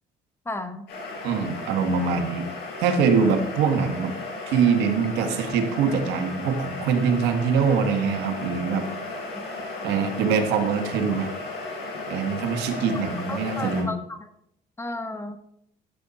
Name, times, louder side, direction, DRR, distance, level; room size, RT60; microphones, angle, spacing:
voice 1, 0.5-0.9 13.3-14.3 14.8-15.4, left 2 dB, 15° left, 8 dB, 1.0 m, -33 dB
sound 1, 0.9-13.8, left 2 dB, 75° left, 4.7 m, -35 dB
voice 2, 1.2-2.5 2.8-4.1 4.4-8.8 9.8-11.3 12.1-13.9, right 6 dB, 90° right, 7 dB, 1.4 m, -23 dB
11.5 x 6.9 x 4.2 m, 0.74 s
cardioid pair, 110°, 17 cm